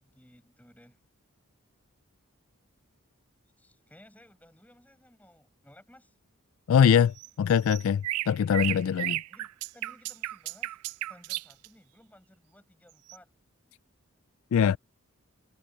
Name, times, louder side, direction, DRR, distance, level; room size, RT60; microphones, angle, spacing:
voice 1, 0.0-1.0 3.6-6.2 9.0-10.8 11.1-13.3, left 1 dB, 5° left, 5.1 m, -57 dB
voice 2, 6.7-9.2 14.5-14.8, left 8 dB, 70° left, 0.3 m, -23 dB
sound 1, 7.2-11.7 13.1-13.2, right 16 dB, 85° right, 0.3 m, -33 dB
head